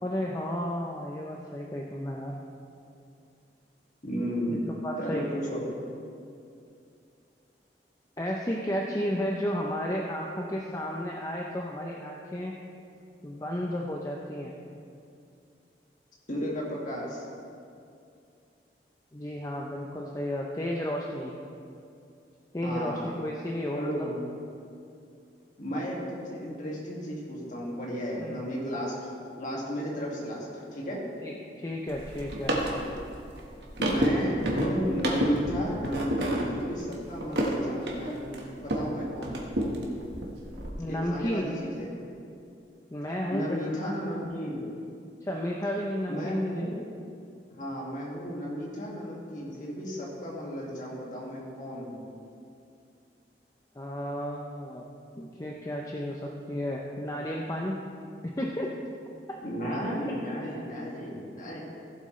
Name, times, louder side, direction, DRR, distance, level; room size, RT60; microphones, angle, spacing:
voice 1, 0.0-2.3 4.5-5.2 8.2-12.5 13.2-14.5 19.1-21.3 22.5-24.1 28.2-28.4 31.2-32.6 40.8-41.5 42.9-44.0 45.2-46.5 53.8-54.8 55.2-57.8 58.4-58.7 59.3-59.4 60.4-60.6, equal, 20° left, -1 dB, 0.6 m, -33 dB
voice 2, 4.0-4.7 5.0-5.6 16.3-17.2 22.6-23.1 23.7-24.2 25.6-28.9 29.3-31.0 33.8-38.3 38.5-39.5 40.9-42.1 43.3-44.6 46.1-46.7 47.5-52.0 59.4-61.6, equal, 45° left, -4 dB, 2.1 m, -34 dB
sound 1, 31.9-38.9 39.2-40.7, right 1 dB, 75° right, 1.4 m, -30 dB
15.0 x 7.8 x 3.2 m, 2.5 s
head